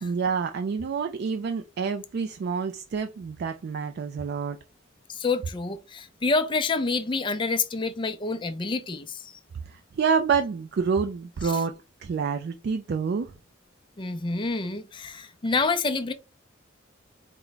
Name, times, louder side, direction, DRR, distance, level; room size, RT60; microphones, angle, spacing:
voice 1, 0.0-4.6 9.7-11.7 12.0-13.3, right 5 dB, 55° right, 0.3 m, -28 dB
voice 2, 5.1-9.3 14.0-16.1, left 3 dB, 25° left, 0.4 m, -28 dB
4.5 x 2.1 x 3.9 m
head